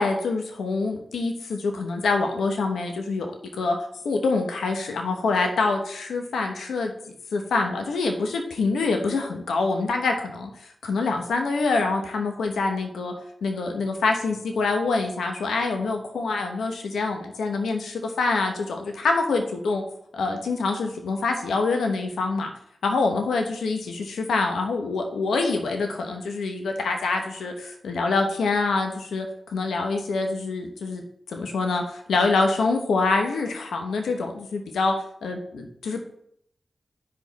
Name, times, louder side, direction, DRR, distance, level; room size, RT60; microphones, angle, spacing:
voice 1, 0.0-3.3 3.6-3.8 4.0-6.9 7.3-10.5 10.8-13.1 13.4-19.8 20.1-22.5 22.8-29.3 29.5-31.0 31.3-34.9 35.2-36.0, left 3 dB, 90° left, 4 dB, 0.9 m, -25 dB
9.7 x 5.2 x 4.1 m, 0.69 s
cardioid pair, 40°, 0 cm